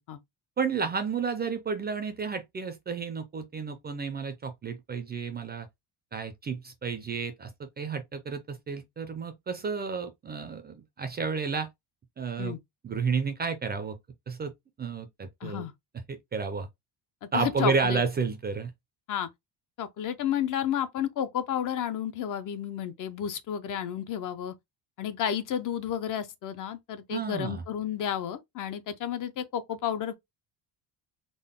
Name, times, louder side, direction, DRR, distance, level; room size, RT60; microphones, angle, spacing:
voice 1, 0.6-5.7 6.1-11.7 12.2-12.5 12.8-14.0 14.3-14.5 14.8-15.7 16.1-16.7 17.3-18.7 27.1-27.6, right 5 dB, 25° right, 0.4 m, -31 dB
voice 2, 15.4-15.7 17.2-18.0 19.1-19.3 19.8-24.5 25.0-30.1, left 9 dB, 50° left, 0.5 m, -31 dB
3.8 x 2.0 x 3.5 m
cardioid pair, 165°, 43 cm